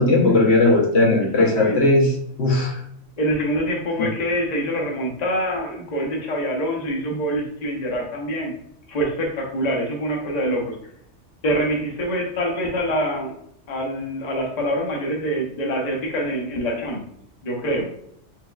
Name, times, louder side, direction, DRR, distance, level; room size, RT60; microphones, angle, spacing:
voice 1, 0.0-2.1 2.4-2.8 4.0-4.1, left 2 dB, 60° left, -1 dB, 1.1 m, -17 dB
voice 2, 1.4-1.8 3.2-8.5 8.9-10.7 11.4-13.4 13.7-17.0 17.4-17.9, equal, 40° left, -1 dB, 0.8 m, -25 dB
4.5 x 3.5 x 2.3 m, 0.70 s
omnidirectional pair, 1.3 m